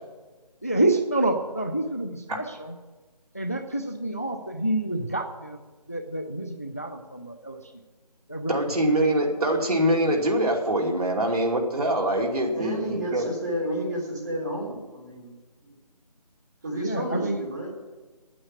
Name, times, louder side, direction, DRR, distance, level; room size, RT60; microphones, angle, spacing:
voice 1, 0.6-2.8 3.3-5.6 5.9-7.7 8.3-8.6 16.8-17.4, right 2 dB, 20° left, 6 dB, 0.4 m, -28 dB
voice 2, 8.5-13.3, right 1 dB, 65° right, 0 dB, 2.6 m, -24 dB
voice 3, 12.5-15.3 15.6-15.7 16.6-17.7, right 1 dB, 30° right, -4 dB, 4.2 m, -31 dB
9.2 x 8.7 x 9.1 m, 1.3 s
figure-of-eight pair, 175°, 21 cm